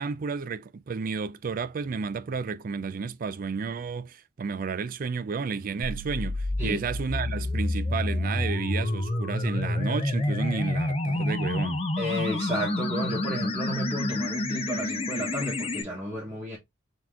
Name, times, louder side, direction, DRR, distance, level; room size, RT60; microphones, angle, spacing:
voice 1, 0.0-11.8, right 5 dB, 45° right, 0.3 m, -32 dB
sound 1, 5.8-15.8, left 2 dB, 30° left, 0.6 m, -29 dB
voice 2, 12.0-16.6, equal, 10° right, 1.3 m, -32 dB
4.1 x 2.9 x 3.6 m
head